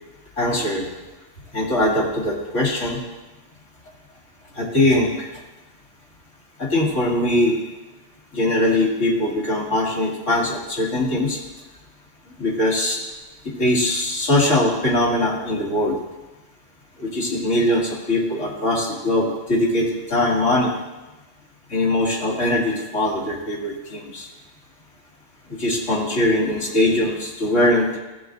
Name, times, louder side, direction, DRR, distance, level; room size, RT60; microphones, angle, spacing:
voice 1, 0.4-0.9 1.5-3.0 4.5-5.3 6.6-7.6 8.3-11.4 12.4-13.0 13.6-16.0 17.0-20.7 21.7-24.3 25.6-28.0, left 1 dB, 80° left, -4 dB, 2.3 m, -21 dB
15.0 x 7.7 x 2.6 m, 1.1 s
omnidirectional pair, 1.3 m